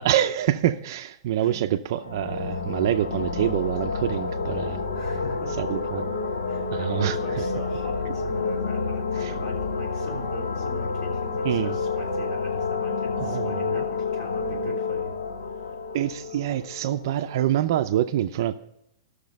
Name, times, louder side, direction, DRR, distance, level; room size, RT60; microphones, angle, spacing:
voice 1, 0.0-4.8 5.6-6.1 6.7-7.4 9.2-9.3 11.4-11.8 13.2-13.8 15.9-18.5, right 12 dB, 45° right, 9 dB, 0.5 m, -26 dB
sound 1, 1.9-17.5, left 4 dB, 60° left, 1.4 m, -29 dB
voice 2, 4.9-5.6 6.5-15.1 15.4-15.8, equal, 25° left, -1 dB, 3.3 m, -40 dB
14.0 x 6.6 x 5.3 m, 0.80 s
hypercardioid pair, 165°, 3 cm